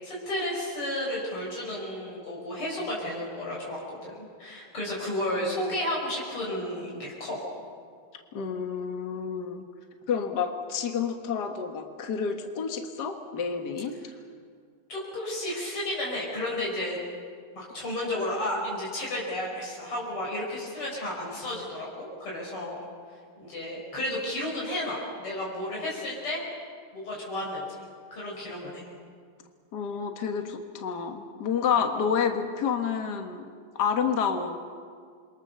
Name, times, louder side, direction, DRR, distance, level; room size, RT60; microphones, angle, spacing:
voice 1, 0.0-7.4 14.9-17.0 17.5-22.8 23.4-26.4 26.9-27.6 28.1-28.8, left 1 dB, 90° left, -4 dB, 6.1 m, -32 dB
voice 2, 8.3-9.6 10.1-13.9 29.7-33.5 33.8-34.6, left 6 dB, 55° left, 5 dB, 1.9 m, -29 dB
27.5 x 22.5 x 6.8 m, 2.1 s
omnidirectional pair, 2.4 m